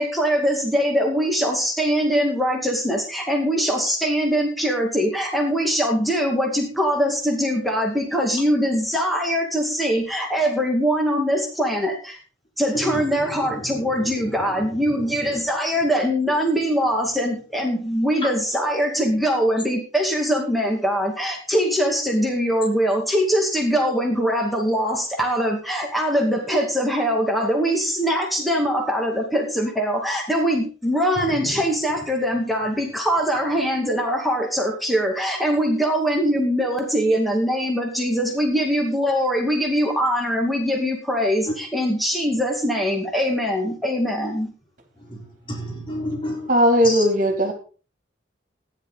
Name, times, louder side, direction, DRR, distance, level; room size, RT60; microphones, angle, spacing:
voice 1, 0.0-12.2 12.6-44.5, equal, ahead, 0 dB, 2.2 m, -22 dB
voice 2, 12.7-14.3 14.9-15.4 31.4-31.6 45.1-46.5 46.8-47.0, left 1 dB, 25° left, -2 dB, 4.1 m, -32 dB
voice 3, 46.5-47.5, equal, 40° right, 4 dB, 2.8 m, -17 dB
15.0 x 10.5 x 4.0 m, 0.37 s
head